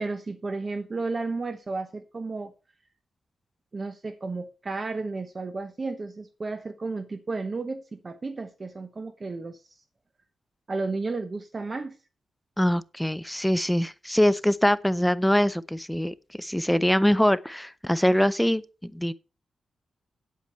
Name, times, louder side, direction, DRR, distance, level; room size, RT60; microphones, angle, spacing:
voice 1, 0.0-2.5 3.7-9.6 10.7-12.0, right 3 dB, 35° right, 1.0 m, -33 dB
voice 2, 12.6-19.1, equal, 5° left, 0.5 m, -23 dB
8.9 x 8.5 x 4.4 m
cardioid pair, 95°, 0 cm